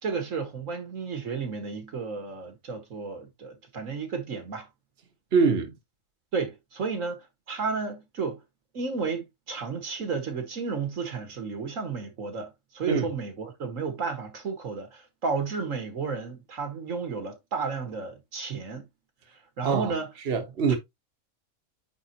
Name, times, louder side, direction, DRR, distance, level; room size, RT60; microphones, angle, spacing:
voice 1, 0.0-4.7 6.3-8.4 8.7-18.9 19.6-20.1 20.7-20.8, right 5 dB, 80° right, 2.0 m, -32 dB
voice 2, 5.3-5.7 12.9-13.1 19.6-19.9 20.3-20.8, right 5 dB, 55° right, 1.4 m, -23 dB
9.2 x 3.9 x 2.9 m
omnidirectional pair, 1.4 m